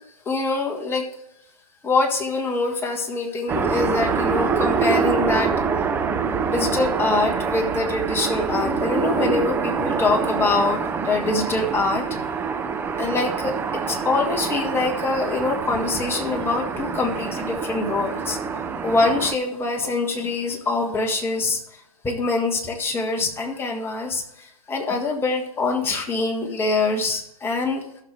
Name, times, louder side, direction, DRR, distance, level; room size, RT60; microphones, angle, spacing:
voice 1, 0.2-1.1 1.8-5.5 6.3-12.0 13.0-13.6 13.9-18.4 18.8-27.8, left 3 dB, 10° left, 1 dB, 1.7 m, -24 dB
sound 1, 3.5-19.4, right 5 dB, 10° right, 0.6 m, -25 dB
14.5 x 6.6 x 3.4 m, 0.79 s
figure-of-eight pair, 120°, 19 cm